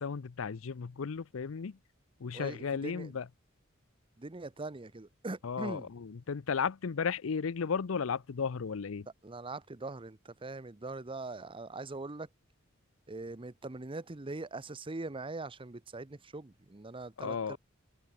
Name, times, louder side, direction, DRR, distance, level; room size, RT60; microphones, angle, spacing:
voice 1, 0.0-1.8 2.2-3.3 5.4-9.1 17.2-17.6, left 6 dB, 80° left, 0.6 m, -34 dB
voice 2, 2.3-3.1 4.2-5.9 9.2-12.3 13.1-17.6, right 2 dB, 25° right, 0.8 m, -42 dB
head